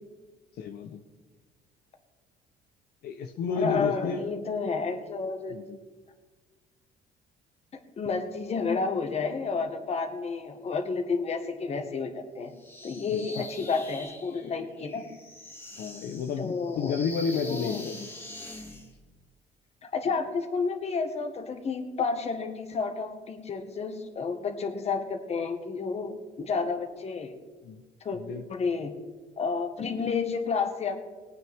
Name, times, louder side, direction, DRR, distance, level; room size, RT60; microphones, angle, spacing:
voice 1, 0.6-1.0 3.0-4.3 5.5-5.8 13.1-13.5 15.8-18.1 27.6-27.8 28.1-28.4, left 5 dB, 65° left, 4 dB, 0.9 m, -31 dB
voice 2, 3.5-5.6 8.0-12.5 12.8-15.0 16.4-17.0 17.4-17.8 19.8-27.3 28.0-28.2 28.5-28.9 29.4-30.9, left 4 dB, 40° left, 6 dB, 1.6 m, -30 dB
sound 1, 12.6-18.9, left 1 dB, 15° left, 2.1 m, -44 dB
19.5 x 9.1 x 3.6 m, 1.3 s
cardioid pair, 110°, 17 cm